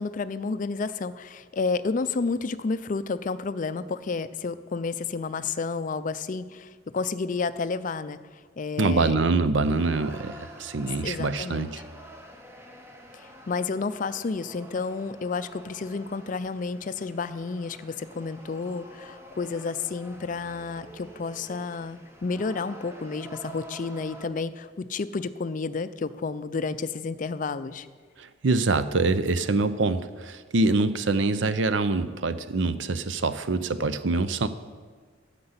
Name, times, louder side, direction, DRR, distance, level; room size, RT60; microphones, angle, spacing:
voice 1, 0.0-8.2 8.6-9.2 11.0-11.7 13.1-27.9, left 4 dB, 40° left, 14 dB, 0.4 m, -31 dB
voice 2, 8.8-11.8 28.2-34.5, right 3 dB, 65° right, 12 dB, 0.6 m, -25 dB
sound 1, 9.6-24.3, right 1 dB, 15° right, 1.0 m, -47 dB
9.5 x 6.8 x 8.0 m, 1.5 s
head